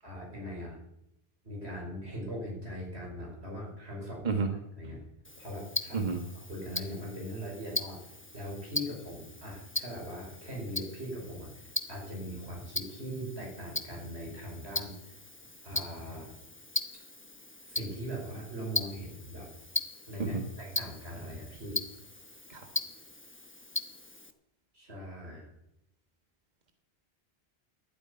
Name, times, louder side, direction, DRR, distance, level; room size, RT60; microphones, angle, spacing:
voice 1, 0.0-0.8 1.4-4.3 4.8-5.0 5.4-6.1 6.5-15.2 15.6-16.3 17.7-19.5 20.1-21.8 24.7-25.5, equal, 85° right, -2 dB, 5.9 m, -40 dB
voice 2, 4.2-4.5 5.9-6.2 20.2-20.4 22.5-22.6, right 4 dB, 45° right, 4 dB, 1.6 m, -30 dB
Tick-tock, 5.2-24.3, left 2 dB, 10° left, 0.9 m, -39 dB
12.0 x 8.4 x 9.7 m, 0.82 s
omnidirectional pair, 1.1 m